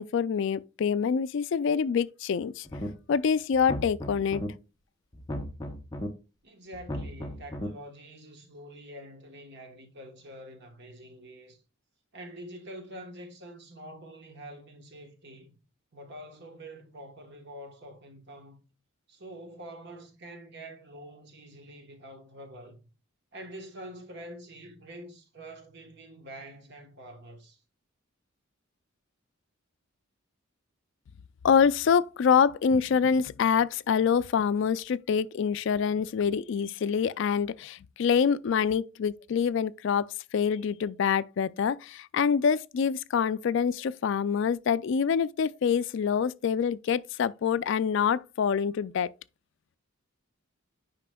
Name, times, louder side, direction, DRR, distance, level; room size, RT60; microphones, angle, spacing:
voice 1, 0.0-2.7 3.1-4.4 31.4-40.1 40.3-49.1, left 6 dB, 55° left, 0.3 m, -26 dB
sound 1, 2.6-3.2 3.5-4.5 5.1-6.1 6.7-7.7, equal, 15° left, 0.7 m, -35 dB
voice 2, 6.4-11.6 12.1-15.6 15.9-18.6 19.1-22.8 23.3-27.6, right 1 dB, 50° right, 1.1 m, -46 dB
9.5 x 5.0 x 2.2 m
head